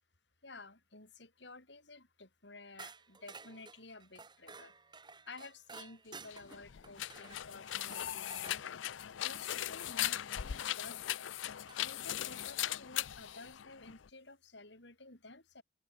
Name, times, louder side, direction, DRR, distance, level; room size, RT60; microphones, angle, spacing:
voice 1, 0.4-4.7 5.2-8.6 9.2-11.2 11.8-15.6, left 3 dB, 65° left, 5.7 m, -53 dB
sound 1, 2.8-8.6 10.6-10.7 11.7-12.1, right 4 dB, 25° right, 2.5 m, -53 dB
sound 2, 6.2-14.1, left 12 dB, 85° left, 0.5 m, -39 dB
open air
head